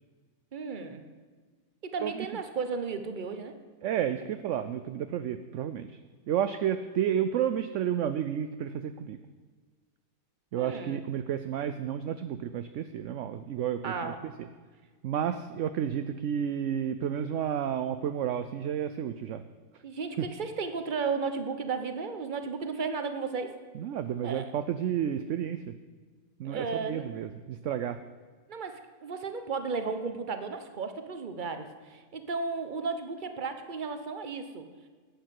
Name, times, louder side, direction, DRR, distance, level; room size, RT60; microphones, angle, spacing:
voice 1, 0.5-1.0 1.8-3.5 10.6-11.0 13.8-14.2 19.8-23.5 24.2-24.5 26.4-27.1 28.5-34.7, right 4 dB, 35° right, 8 dB, 1.1 m, -34 dB
voice 2, 3.8-6.0 6.3-9.2 10.5-14.1 14.4-14.5 15.0-19.4 20.2-20.3 23.7-25.7 26.4-28.0, right 9 dB, 65° right, 10 dB, 0.8 m, -31 dB
11.5 x 8.8 x 7.7 m, 1.5 s
omnidirectional pair, 1.5 m